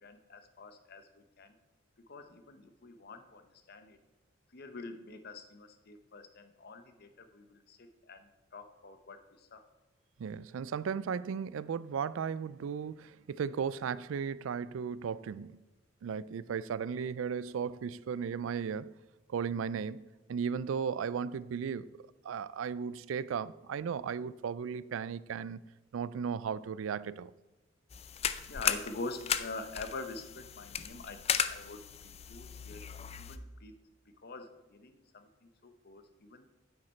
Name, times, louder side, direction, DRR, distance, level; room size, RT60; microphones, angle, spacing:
voice 1, 0.0-1.6 2.1-4.0 4.5-9.6 28.5-33.7 34.2-36.4, left 3 dB, 55° left, 0.9 m, -46 dB
voice 2, 10.2-15.6 16.0-18.9 19.3-20.0 20.3-21.9 22.2-25.6 25.9-27.3, right 6 dB, 85° right, 0.4 m, -35 dB
sound 1, 27.9-33.4, left 8 dB, 30° left, 0.4 m, -36 dB
9.6 x 7.9 x 4.4 m
head